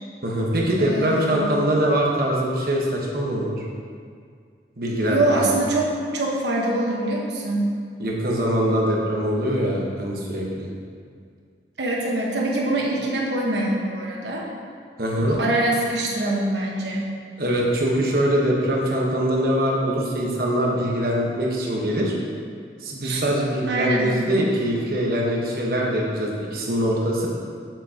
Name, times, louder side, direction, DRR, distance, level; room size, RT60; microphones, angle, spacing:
voice 1, 0.2-3.6 4.8-5.4 8.0-10.7 15.0-15.4 17.4-22.1 22.8-27.3, equal, 55° right, -3 dB, 1.2 m, -23 dB
voice 2, 0.8-1.6 5.1-7.7 11.8-14.5 15.3-17.1 23.0-23.2 23.7-24.3, right 1 dB, 75° right, -2 dB, 1.2 m, -24 dB
7.7 x 7.2 x 2.9 m, 2.2 s
head